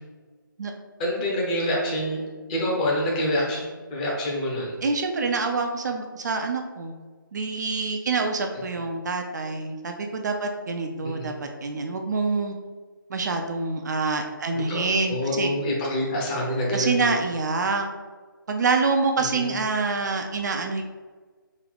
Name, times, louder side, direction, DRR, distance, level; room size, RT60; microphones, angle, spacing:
voice 1, 1.0-2.2 2.5-3.6 3.9-4.7 11.0-11.3 14.5-14.8 15.1-17.1 19.2-19.6, left 1 dB, 20° left, -3 dB, 0.7 m, -26 dB
voice 2, 4.8-6.9 7.3-12.6 13.1-15.5 16.7-17.9 18.5-20.8, right 4 dB, 55° right, 4 dB, 0.4 m, -26 dB
3.7 x 2.2 x 3.4 m, 1.4 s
figure-of-eight pair, 150°, 12 cm